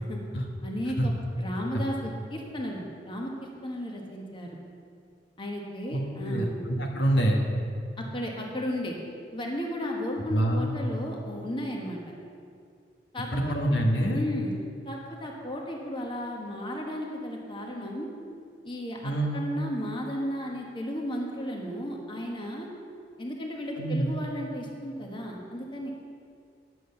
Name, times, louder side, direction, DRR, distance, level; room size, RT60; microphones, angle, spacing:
voice 1, 0.6-3.3 3.6-4.6 5.4-6.6 8.0-9.0 9.3-12.0 13.1-13.6 14.1-14.6 14.8-18.1 18.6-22.7 23.2-25.9, equal, 30° left, -1 dB, 1.4 m, -34 dB
voice 2, 5.9-6.5 6.8-7.4 10.3-10.7 13.3-14.2 19.0-19.5 23.8-24.1, right 1 dB, 65° left, 0 dB, 1.4 m, -26 dB
10.5 x 7.8 x 6.7 m, 2.3 s
head